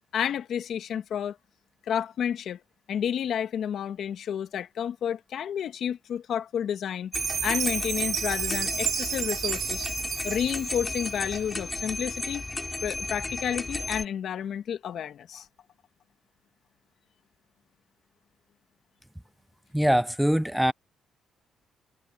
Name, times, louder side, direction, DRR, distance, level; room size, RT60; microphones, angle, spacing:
voice 1, 0.1-1.4 1.9-2.6 2.9-7.1 7.4-9.9 10.2-12.5 12.8-15.5, left 9 dB, 65° left, 1.7 m, -30 dB
sound 1, 7.1-14.0, left 2 dB, 20° left, 4.9 m, -34 dB
Chime, 7.1-11.4, right 11 dB, 75° right, 3.3 m, -32 dB
voice 2, 19.7-20.7, equal, 5° right, 0.6 m, -23 dB
cardioid pair, 90°, 0 cm